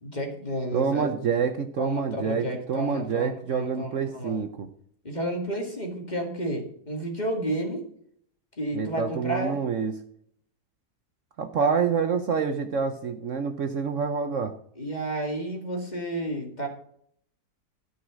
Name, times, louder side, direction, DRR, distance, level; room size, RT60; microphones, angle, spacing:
voice 1, 0.0-1.1 1.8-4.4 5.0-7.8 8.6-9.6 11.6-11.7 14.8-16.7, right 1 dB, 25° left, 2 dB, 2.2 m, -31 dB
voice 2, 0.7-4.7 8.7-9.9 11.4-14.5, right 6 dB, 55° right, 7 dB, 1.0 m, -27 dB
13.0 x 5.6 x 6.3 m, 0.66 s
omnidirectional pair, 1.7 m